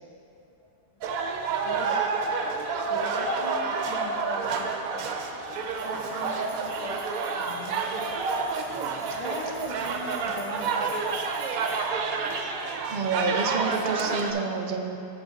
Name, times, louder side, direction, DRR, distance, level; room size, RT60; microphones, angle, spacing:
sound 1, 1.0-14.3, right 4 dB, 70° right, 1.0 m, -29 dB
voice 1, 1.6-2.0 2.8-4.8 5.8-8.1 9.2-11.0, left 1 dB, 50° left, -3 dB, 0.4 m, -38 dB
sound 2, 5.5-11.8, right 2 dB, 15° right, 1.3 m, -51 dB
voice 2, 12.9-15.0, right 4 dB, 55° right, 2 dB, 0.5 m, -28 dB
8.0 x 6.0 x 5.2 m, 2.8 s
omnidirectional pair, 1.6 m